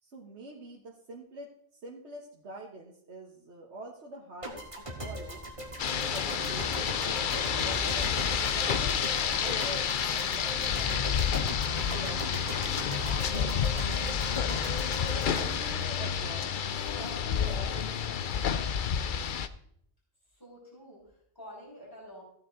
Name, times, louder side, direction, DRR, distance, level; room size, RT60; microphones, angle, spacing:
voice 1, 0.0-5.4 5.8-6.7 7.0-12.5 13.0-14.6 15.4-18.3, right 2 dB, 65° right, -2 dB, 1.7 m, -46 dB
sound 1, 4.4-16.6, equal, 25° right, 2.2 m, -40 dB
Rain, 5.8-19.5, left 7 dB, 50° left, 0.7 m, -29 dB
Bird, 8.2-13.9, right 2 dB, 45° right, 2.2 m, -53 dB
voice 2, 20.2-22.2, equal, 15° left, -7 dB, 6.3 m, -49 dB
15.0 x 9.4 x 3.9 m, 0.68 s
omnidirectional pair, 1.3 m